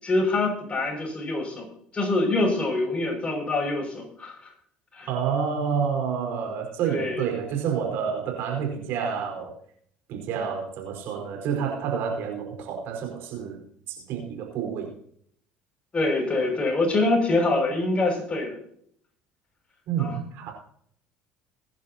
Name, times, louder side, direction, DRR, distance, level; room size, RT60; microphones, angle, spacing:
voice 1, 0.0-1.7 1.9-4.5 4.9-5.1 6.8-7.2 15.9-18.6 20.0-20.2, left 2 dB, 30° left, 2 dB, 6.6 m, -25 dB
voice 2, 5.1-9.6 10.1-15.0 19.9-20.5, right 7 dB, 60° right, 1 dB, 4.8 m, -29 dB
23.0 x 11.0 x 2.9 m, 0.65 s
hypercardioid pair, 65°, 4 cm